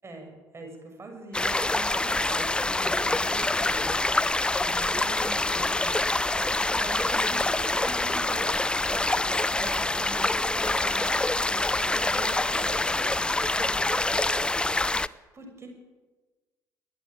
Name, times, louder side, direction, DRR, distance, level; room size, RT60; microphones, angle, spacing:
voice 1, 0.0-3.9 4.6-11.1 11.4-13.8 14.9-15.7, right 2 dB, 25° right, 3 dB, 6.2 m, -43 dB
sound 1, 1.3-15.1, left 2 dB, 10° left, 0.6 m, -26 dB
20.5 x 14.0 x 9.2 m, 1.3 s
figure-of-eight pair, 55°, 10 cm